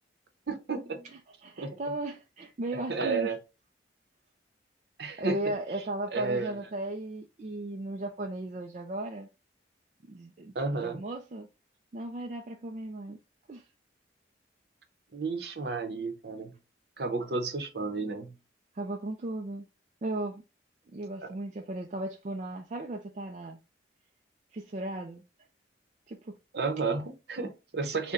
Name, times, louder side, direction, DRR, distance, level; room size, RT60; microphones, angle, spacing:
voice 1, 0.5-1.1 1.6-1.8 2.9-3.4 5.0-5.4 6.1-6.5 10.5-11.0 15.1-16.5 17.0-18.3 21.2-21.3 26.5-28.1, right 4 dB, 65° right, 0.7 m, -32 dB
voice 2, 1.4-3.3 5.2-9.3 10.1-10.5 10.8-11.5 11.9-13.2 13.5-13.7 18.7-19.7 20.0-20.4 20.9-23.6 24.5-25.2 26.1-26.4, right 1 dB, 40° right, 0.4 m, -36 dB
3.7 x 2.2 x 3.9 m
head